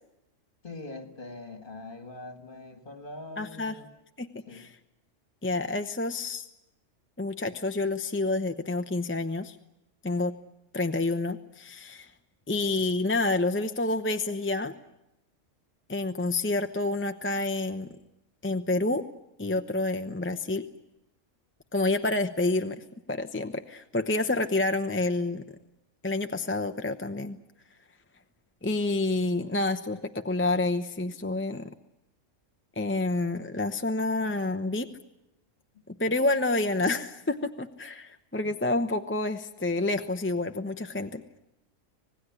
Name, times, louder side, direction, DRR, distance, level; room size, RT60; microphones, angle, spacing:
voice 1, 0.6-3.9 4.5-4.7 12.8-13.0, left 2 dB, 40° left, 7 dB, 2.5 m, -43 dB
voice 2, 3.4-3.8 4.2-4.7 5.4-6.5 7.2-9.6 10.0-10.3 10.7-12.1 12.5-14.7 15.9-17.9 18.4-19.0 19.4-20.7 21.7-22.8 23.1-25.4 26.0-27.4 28.6-31.7 32.8-34.9 36.0-41.2, left 2 dB, 10° left, 7 dB, 0.8 m, -28 dB
26.5 x 19.0 x 9.7 m, 0.88 s
omnidirectional pair, 1.3 m